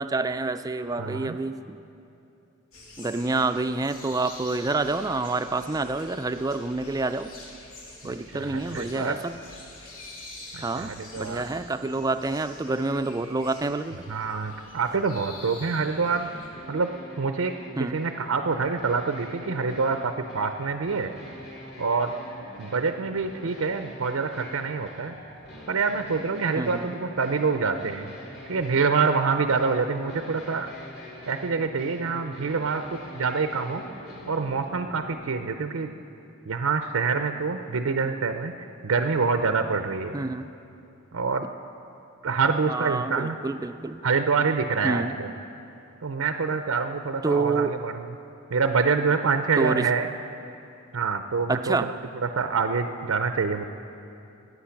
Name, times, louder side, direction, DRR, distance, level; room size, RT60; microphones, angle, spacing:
voice 1, 0.0-1.8 3.0-7.3 8.0-9.4 10.6-14.1 17.8-18.0 26.5-26.9 40.1-40.5 42.7-44.0 44.8-45.1 47.2-47.7 49.6-49.9 51.5-51.9, right 3 dB, 15° right, 10 dB, 0.4 m, -28 dB
voice 2, 1.0-1.4 8.0-9.2 10.5-11.4 14.1-16.3 16.7-16.9 17.2-17.5 17.8-21.1 21.8-22.1 22.6-25.1 25.7-28.1 28.5-30.7 31.3-33.8 34.3-35.9 36.5-38.5 38.8-40.1 41.1-41.4 42.2-43.4 44.0-45.3 46.0-48.0 48.5-50.1 50.9-51.9 52.2-53.6, right 5 dB, 85° right, 7 dB, 0.6 m, -26 dB
sound 1, 2.7-16.5, left 2 dB, 80° left, 2.4 m, -46 dB
sound 2, 15.9-35.1, left 1 dB, 55° left, 3.3 m, -44 dB
20.0 x 8.3 x 5.8 m, 2.7 s
head